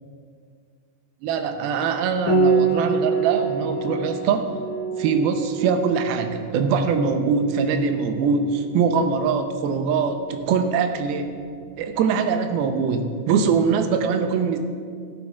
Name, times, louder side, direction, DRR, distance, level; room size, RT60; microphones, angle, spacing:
voice 1, 1.2-4.5 5.0-11.3 11.8-14.6, right 5 dB, 80° right, 6 dB, 2.6 m, -22 dB
Piano, 2.3-11.6, right 4 dB, 65° left, 2.5 m, -27 dB
16.5 x 12.0 x 2.4 m, 2.1 s
omnidirectional pair, 4.5 m